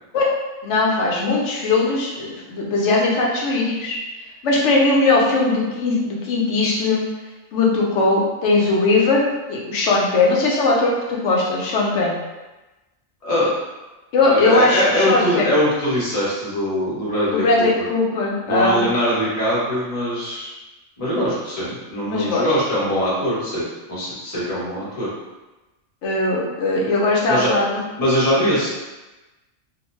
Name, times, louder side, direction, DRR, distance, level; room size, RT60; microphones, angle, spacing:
voice 1, 0.6-4.0 4.4-7.0 7.5-12.2 14.1-15.5 17.3-18.8 22.1-22.5 26.0-27.8 28.4-28.5, left 3 dB, 70° left, -3 dB, 0.9 m, -19 dB
voice 2, 14.2-17.6 18.4-20.5 21.0-25.1 27.3-27.5 28.0-28.7, equal, 30° left, -9 dB, 1.0 m, -22 dB
2.6 x 2.1 x 3.0 m, 1.1 s
omnidirectional pair, 1.3 m